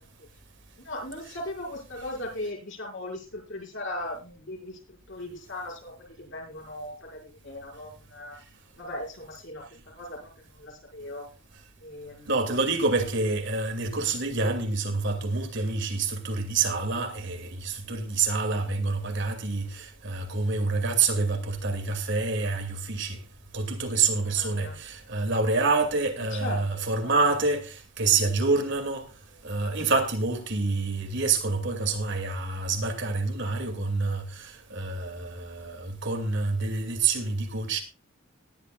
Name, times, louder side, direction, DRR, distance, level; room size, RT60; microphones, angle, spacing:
voice 1, 0.8-8.4 8.8-9.6 10.0-11.3 11.8-12.3 24.2-24.8 26.3-27.3, left 1 dB, 60° left, 5.7 m, -38 dB
voice 2, 12.3-23.2 23.5-29.1 29.4-37.8, right 3 dB, 55° right, 2.4 m, -27 dB
19.0 x 11.5 x 2.4 m
head